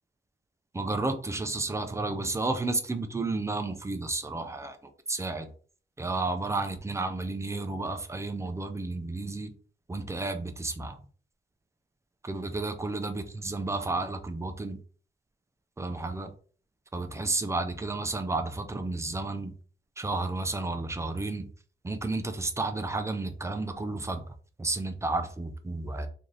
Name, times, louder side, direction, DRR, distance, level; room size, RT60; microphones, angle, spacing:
voice 1, 0.7-5.5 6.0-9.5 9.9-11.0 12.2-14.8 15.8-16.3 16.9-19.5 20.0-21.5 21.8-26.1, right 2 dB, 15° right, 7 dB, 0.4 m, -32 dB
3.1 x 2.6 x 3.9 m, 0.43 s
wide cardioid pair, 165°, 21 cm